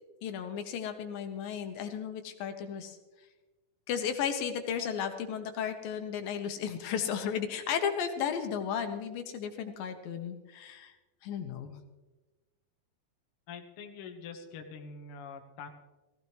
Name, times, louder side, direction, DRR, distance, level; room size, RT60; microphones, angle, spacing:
voice 1, 0.2-3.0 3.9-10.9 11.2-11.8, left 8 dB, 75° left, 6 dB, 2.7 m, -34 dB
voice 2, 13.5-15.7, left 5 dB, 55° left, 4 dB, 1.6 m, -45 dB
18.0 x 16.0 x 3.2 m, 1.1 s
omnidirectional pair, 4.2 m